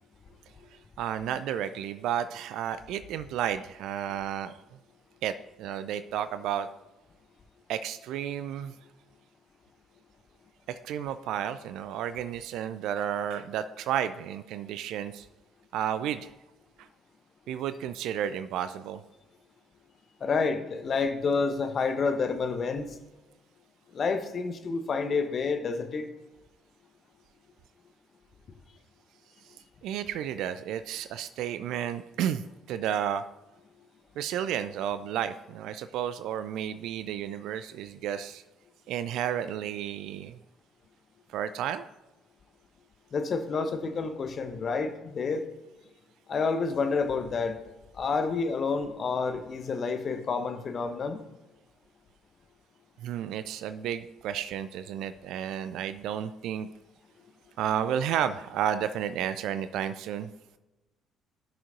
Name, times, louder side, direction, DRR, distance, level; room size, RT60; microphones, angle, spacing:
voice 1, 0.7-4.6 5.2-6.7 7.7-8.8 10.7-15.3 15.7-16.3 16.8-16.9 17.5-19.0 29.8-33.2 34.2-38.4 38.9-40.4 41.3-41.9 53.0-56.7 57.6-60.3, right 9 dB, 60° right, 13 dB, 0.3 m, -32 dB
voice 2, 20.2-22.9 23.9-26.0 43.1-45.5 46.3-47.6 47.9-51.2, left 4 dB, 45° left, 8 dB, 1.0 m, -29 dB
17.0 x 6.2 x 2.6 m, 1.1 s
figure-of-eight pair, 50°, 0 cm